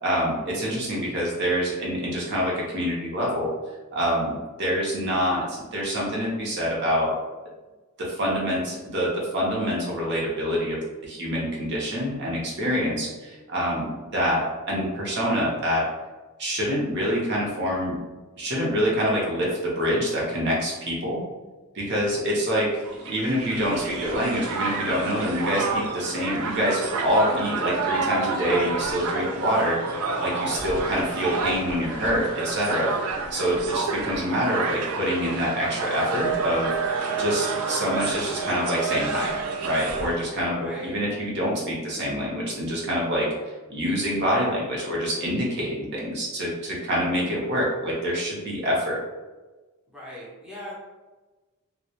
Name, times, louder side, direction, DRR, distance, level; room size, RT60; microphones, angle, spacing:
voice 1, 0.0-3.5 3.9-7.1 8.0-15.9 16.4-18.0 18.4-21.2 21.7-22.7 23.1-36.7 37.2-39.3 39.6-43.3 43.7-49.0, equal, 55° right, -4 dB, 0.7 m, -26 dB
Crowd, 22.8-40.2, right 4 dB, 90° right, 0.4 m, -29 dB
voice 2, 40.6-41.0 49.9-50.7, equal, 5° right, -7 dB, 0.6 m, -39 dB
2.1 x 2.0 x 2.8 m, 1.2 s
head